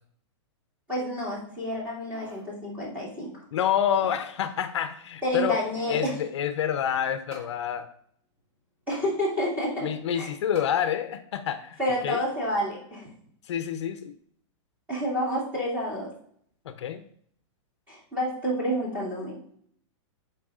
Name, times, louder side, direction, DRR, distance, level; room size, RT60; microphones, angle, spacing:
voice 1, 0.9-3.3 5.2-6.1 8.9-10.3 11.8-13.1 14.9-16.1 17.9-19.4, equal, 10° right, -5 dB, 2.1 m, -29 dB
sound 1, 1.8-2.5 2.9-3.0 3.8-4.3 5.3-6.1 7.3-7.5 8.9-9.1 10.5-10.7 11.3-11.4, right 1 dB, 30° right, 2.0 m, -47 dB
voice 2, 3.5-5.6 5.9-7.9 9.8-11.8 12.0-12.2 13.4-14.1 16.7-17.1, left 9 dB, 65° left, 10 dB, 0.6 m, -28 dB
11.0 x 4.6 x 2.4 m, 0.64 s
supercardioid pair, 175°, 16 cm